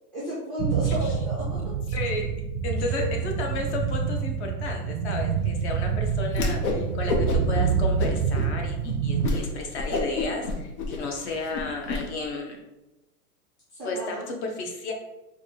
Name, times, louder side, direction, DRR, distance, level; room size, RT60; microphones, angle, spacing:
voice 1, 0.1-1.6 2.9-3.1 13.7-14.3, equal, ahead, -11 dB, 0.4 m, -33 dB
sound 1, 0.6-9.3, right 6 dB, 65° right, 0.5 m, -27 dB
voice 2, 1.9-2.3 2.6-7.1 7.5-12.6 13.8-14.9, left 3 dB, 45° left, 2 dB, 0.9 m, -33 dB
Whoosh swoosh swish, 6.3-6.8 7.1-7.6 8.0-8.5 8.8-8.9 9.2-9.4 9.7-12.0, left 3 dB, 70° left, 1.1 m, -28 dB
4.5 x 2.4 x 4.4 m, 1.0 s
supercardioid pair, 165°, 45 cm